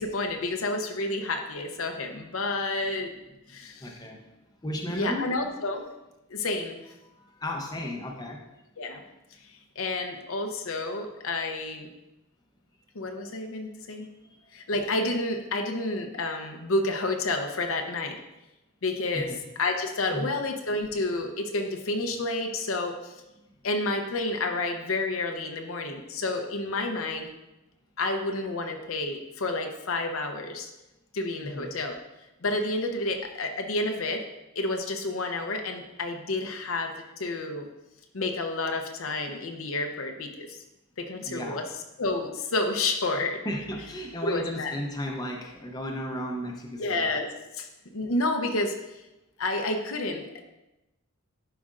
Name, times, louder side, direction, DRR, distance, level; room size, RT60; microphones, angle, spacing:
voice 1, 0.0-3.1 3.5-3.9 4.9-5.9 6.3-6.9 8.8-9.0 9.8-11.9 12.9-14.1 14.5-18.2 18.8-19.3 19.6-23.1 23.6-27.3 28.0-30.7 31.1-31.9 32.4-34.2 34.6-36.9 37.2-37.7 38.1-40.6 41.0-41.6 42.0-43.4 44.2-44.7 46.8-47.7 47.9-49.0 49.4-50.4, left 2 dB, 70° left, 4 dB, 0.7 m, -30 dB
voice 2, 3.5-5.3 7.0-8.4 14.2-14.5 19.1-19.4 20.1-20.3 31.4-31.7 41.3-41.6 43.4-47.1, equal, 20° left, 1 dB, 0.7 m, -35 dB
11.5 x 5.0 x 2.5 m, 0.97 s
head